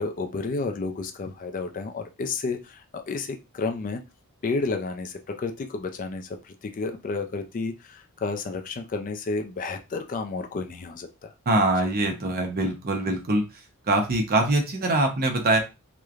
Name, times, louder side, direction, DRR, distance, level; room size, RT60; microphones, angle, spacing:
voice 1, 0.0-4.0 4.4-11.3, left 3 dB, 35° left, 5 dB, 0.3 m, -31 dB
voice 2, 11.5-13.4 13.9-15.6, right 2 dB, 45° right, 3 dB, 0.7 m, -23 dB
3.0 x 2.1 x 2.4 m, 0.26 s
head